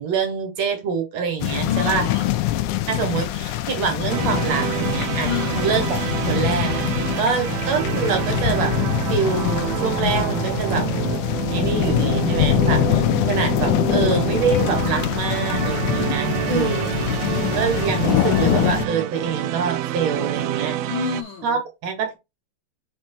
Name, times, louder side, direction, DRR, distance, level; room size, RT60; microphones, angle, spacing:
voice 1, 0.0-2.1 2.9-6.0 6.3-6.9 7.2-8.7 9.1-10.9 11.5-17.0 17.5-20.8 21.4-22.2, right 6 dB, 65° right, 2.5 m, -25 dB
sound 1, 1.4-18.9, left 15 dB, 90° left, 2.1 m, -23 dB
voice 2, 1.6-2.3 5.2-5.6 7.2-7.5 16.4-17.4 20.8-21.6, left 8 dB, 60° left, 1.4 m, -30 dB
sound 2, 4.1-21.2, right 13 dB, 80° right, 1.6 m, -27 dB
5.7 x 4.4 x 4.4 m
omnidirectional pair, 3.4 m